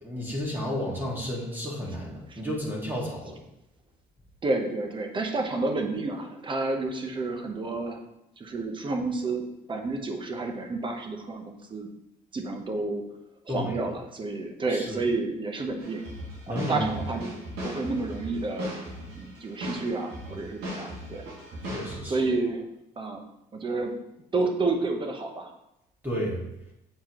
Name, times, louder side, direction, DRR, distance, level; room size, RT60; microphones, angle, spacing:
voice 1, 0.0-3.4 13.5-13.9 14.7-15.0 16.5-17.0 21.6-22.2 26.0-26.4, equal, 10° right, -4 dB, 1.8 m, -32 dB
voice 2, 4.4-8.0 8.4-11.9 12.3-13.0 13.5-16.1 16.5-17.3 17.6-18.8 19.1-21.3 22.0-22.6 23.0-23.2 23.5-23.9 24.3-25.5, right 3 dB, 30° right, 4 dB, 0.9 m, -30 dB
sound 1, 15.8-22.0, equal, 85° right, 1.9 m, -38 dB
7.6 x 4.6 x 3.0 m, 0.86 s
cardioid pair, 110°, 17 cm